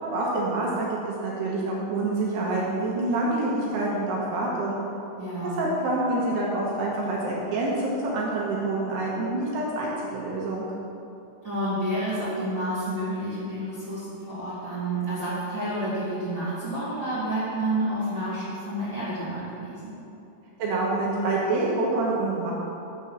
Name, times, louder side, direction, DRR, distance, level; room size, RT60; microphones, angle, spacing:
voice 1, 0.0-4.8 5.4-10.7 20.6-22.5, right 2 dB, 70° right, -4 dB, 2.7 m, -27 dB
voice 2, 5.2-5.7 11.4-19.9, right 1 dB, 30° right, -13 dB, 2.3 m, -29 dB
8.2 x 7.0 x 7.2 m, 2.8 s
omnidirectional pair, 5.9 m